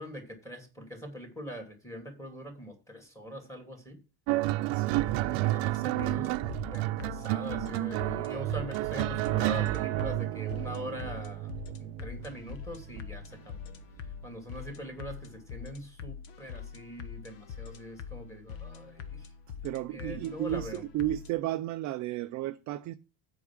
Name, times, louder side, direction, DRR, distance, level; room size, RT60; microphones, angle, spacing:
voice 1, 0.0-4.0 5.0-11.5 11.8-13.6 14.2-19.3 19.9-20.8, equal, 5° left, 2.6 m, -43 dB
sound 1, 4.3-13.0 14.0-14.2, right 17 dB, 70° right, 0.7 m, -31 dB
voice 2, 4.6-5.5 19.6-23.0, right 15 dB, 40° right, 0.4 m, -34 dB
sound 2, 5.7-21.3, left 7 dB, 55° left, 1.3 m, -44 dB
8.3 x 4.8 x 7.2 m
cardioid pair, 165°, 50 cm